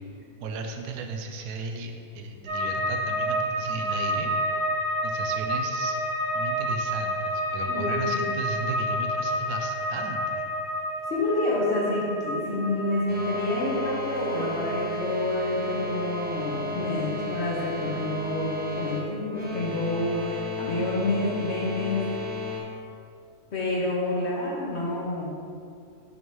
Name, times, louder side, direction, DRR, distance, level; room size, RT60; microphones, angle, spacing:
voice 1, 0.4-4.3 5.0-6.0 6.3-10.5, right 3 dB, 85° right, 4 dB, 1.1 m, -35 dB
sound 1, 2.5-19.6 19.9-20.6, equal, 45° right, 1.5 m, -31 dB
voice 2, 7.7-8.3 11.1-18.5 18.8-22.0 23.5-25.3, left 2 dB, 50° left, -4 dB, 1.2 m, -28 dB
sound 2, 13.1-22.6, left 2 dB, 10° right, 0.6 m, -34 dB
6.2 x 3.1 x 5.3 m, 2.4 s
omnidirectional pair, 1.6 m